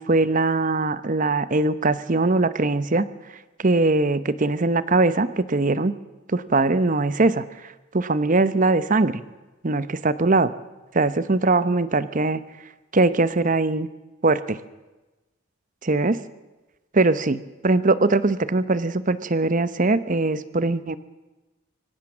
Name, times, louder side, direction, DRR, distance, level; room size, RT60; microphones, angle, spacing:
voice 1, 0.0-3.1 3.6-5.9 6.3-9.2 9.6-10.5 10.9-12.4 12.9-13.9 14.2-14.6 15.8-16.2 16.9-21.0, right 3 dB, 35° right, 14 dB, 0.8 m, -21 dB
24.5 x 16.5 x 7.3 m, 1.1 s
head